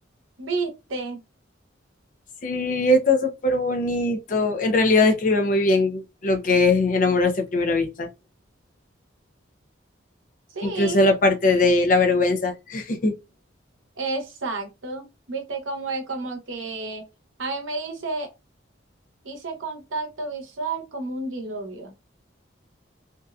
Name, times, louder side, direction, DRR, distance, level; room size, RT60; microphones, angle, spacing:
voice 1, 0.4-1.2 10.5-11.0 14.0-17.1 17.4-18.3 19.2-21.9, right 3 dB, 90° right, 0.8 m, -31 dB
voice 2, 2.4-8.1 10.6-13.1, left 2 dB, 40° left, 0.4 m, -21 dB
2.6 x 2.1 x 2.3 m
head